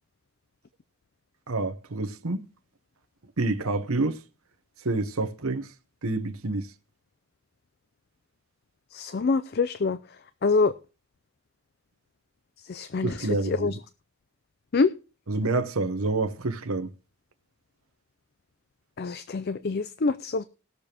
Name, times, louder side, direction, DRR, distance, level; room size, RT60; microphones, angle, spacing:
voice 1, 1.5-2.5 3.4-4.2 4.8-5.7 6.0-6.7 13.0-13.7 15.3-16.9, right 2 dB, 75° right, 1.0 m, -28 dB
voice 2, 8.9-10.0 10.4-10.7 12.7-13.8 14.7-14.9 19.0-20.4, left 4 dB, 45° left, 0.4 m, -25 dB
19.5 x 6.8 x 2.9 m
head